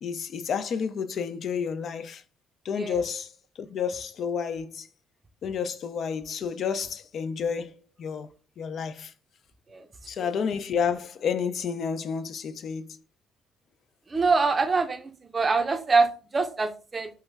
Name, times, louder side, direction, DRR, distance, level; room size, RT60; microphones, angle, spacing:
voice 1, 0.0-2.2 2.6-4.9 5.4-8.3 8.6-9.1 10.1-13.0, left 6 dB, 55° left, 0.3 m, -30 dB
voice 2, 14.1-17.1, right 4 dB, 30° right, 0.4 m, -24 dB
3.0 x 2.2 x 3.3 m
cardioid pair, 100°, 0 cm